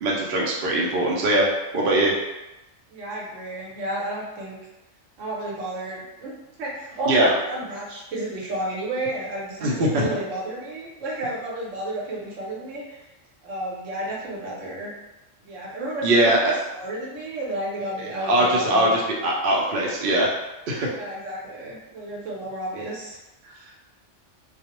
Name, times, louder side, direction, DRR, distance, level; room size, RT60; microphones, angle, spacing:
voice 1, 0.0-1.5 1.7-2.1 7.1-7.3 9.6-10.1 16.0-16.4 18.0-20.3 20.7-20.9, right 1 dB, 60° right, -3 dB, 0.6 m, -21 dB
voice 2, 2.9-4.6 5.2-6.3 6.6-13.0 13.4-14.9 15.4-19.0 20.9-23.2, right 1 dB, 85° right, -4 dB, 1.1 m, -32 dB
2.4 x 2.0 x 2.9 m, 1.0 s
omnidirectional pair, 1.3 m